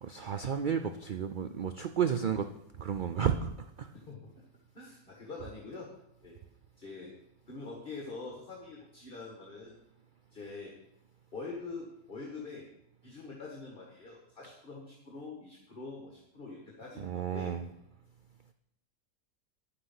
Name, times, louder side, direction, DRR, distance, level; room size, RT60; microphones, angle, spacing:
voice 1, 0.0-2.5 2.8-3.5 3.8-3.9 17.0-17.6, right 8 dB, 85° right, 8 dB, 0.4 m, -32 dB
voice 2, 3.9-4.3 4.7-5.9 6.2-6.4 6.8-7.1 7.5-9.8 10.3-10.7 11.3-12.7 13.0-17.5, left 3 dB, 40° left, -2 dB, 2.0 m, -44 dB
10.5 x 8.0 x 5.7 m, 0.81 s
omnidirectional pair, 1.5 m